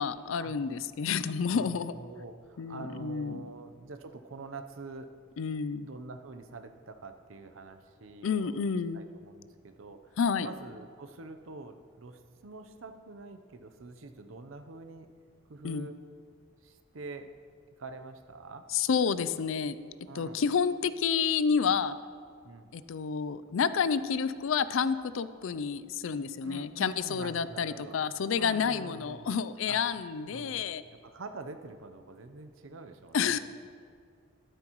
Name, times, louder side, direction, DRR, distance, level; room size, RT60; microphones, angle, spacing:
voice 1, 0.0-1.9 2.6-3.5 5.4-5.9 8.2-9.0 10.2-10.5 15.6-15.9 18.7-19.8 20.1-21.9 22.7-30.8 33.1-33.4, left 6 dB, 70° left, 14 dB, 0.4 m, -29 dB
voice 2, 1.5-5.1 5.8-8.6 8.9-15.1 15.5-16.0 16.6-17.3 17.8-18.7 20.1-20.4 22.4-22.7 26.4-28.0 28.3-29.3 29.7-29.8 30.3-33.4, right 3 dB, 75° right, 8 dB, 0.7 m, -46 dB
12.5 x 12.5 x 3.1 m, 2.2 s
head